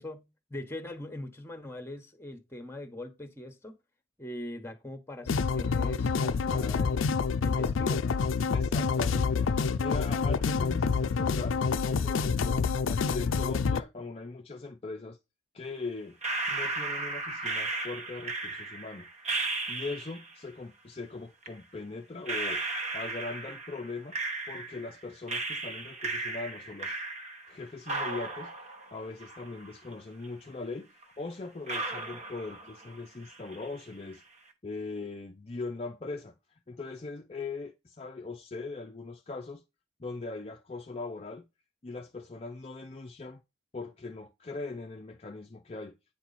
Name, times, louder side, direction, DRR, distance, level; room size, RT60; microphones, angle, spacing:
voice 1, 0.0-3.7 4.2-7.1 7.4-8.1, left 1 dB, 10° left, 1.1 m, -42 dB
sound 1, 5.3-13.8, left 5 dB, 90° left, 0.5 m, -27 dB
voice 2, 8.5-9.5 9.8-15.2 15.5-16.2 16.5-19.1 19.7-24.2 24.5-27.0 27.5-34.2 34.6-39.6 40.0-41.4 41.8-43.4 43.7-45.9, left 3 dB, 30° left, 0.5 m, -40 dB
sound 2, 16.2-20.3 21.4-21.5 22.3-24.9 25.3-27.6 27.9-29.9 30.2-30.3 31.0-31.1 31.7-33.0 33.3-33.8, right 3 dB, 35° right, 1.1 m, -35 dB
9.0 x 4.5 x 4.1 m
head